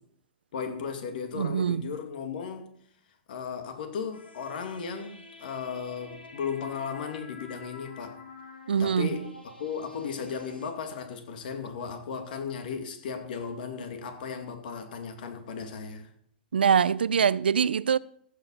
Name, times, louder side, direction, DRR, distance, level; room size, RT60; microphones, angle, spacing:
voice 1, 0.5-2.7 3.3-8.2 8.8-9.3 9.6-16.1, left 6 dB, 65° left, 2.0 m, -36 dB
voice 2, 1.3-1.9 8.7-9.2 16.5-18.0, right 7 dB, 80° right, 0.4 m, -24 dB
sound 1, 4.1-10.7, left 3 dB, 90° left, 1.8 m, -49 dB
15.0 x 5.1 x 5.4 m
hypercardioid pair, 110°, 5 cm